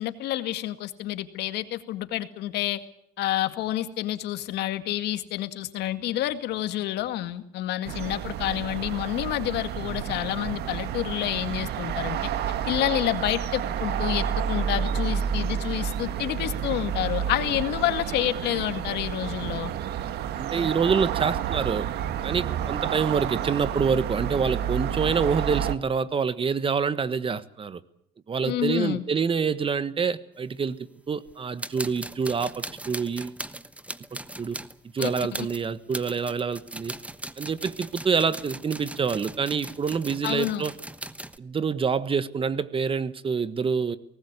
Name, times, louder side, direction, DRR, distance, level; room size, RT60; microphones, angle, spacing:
voice 1, 0.0-2.8 3.2-12.3 12.7-19.7 28.4-29.0 35.0-35.5 40.2-40.6, left 13 dB, 80° left, 9 dB, 2.1 m, -29 dB
sound 1, 7.8-25.7, right 9 dB, 75° right, 1.6 m, -30 dB
voice 2, 20.4-21.8 22.2-27.8 28.3-30.8 31.1-33.4 34.4-34.6 34.9-36.9 37.4-40.7 41.4-44.0, right 5 dB, 30° right, 15 dB, 1.3 m, -26 dB
sound 2, 31.3-31.4 31.6-41.4, right 1 dB, 10° right, 1.2 m, -39 dB
23.5 x 19.0 x 8.2 m, 0.71 s
cardioid pair, 110°, 17 cm